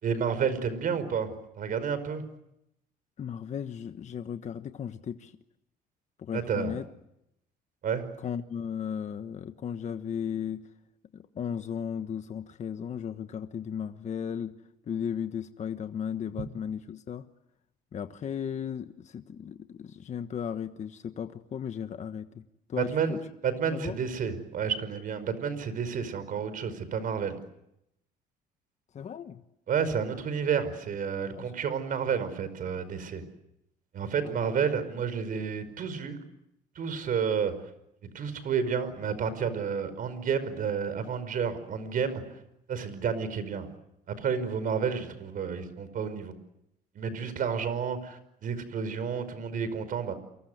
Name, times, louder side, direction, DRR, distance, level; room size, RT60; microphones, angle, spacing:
voice 1, 0.0-1.3 1.6-2.3 6.3-6.7 7.8-8.0 22.8-23.2 23.4-27.4 29.7-33.2 33.9-36.2 36.8-37.5 38.0-42.2 42.7-43.7 44.1-46.3 47.0-50.1, right 6 dB, 55° right, 13 dB, 5.2 m, -30 dB
voice 2, 3.2-5.3 6.2-6.9 8.2-10.7 11.1-14.5 14.9-17.2 17.9-22.4 22.7-23.2 23.7-23.9 28.9-29.4 31.4-31.5 34.2-34.5, left 8 dB, 45° left, 9 dB, 1.3 m, -35 dB
29.5 x 24.0 x 8.0 m, 0.82 s
cardioid pair, 110°, 17 cm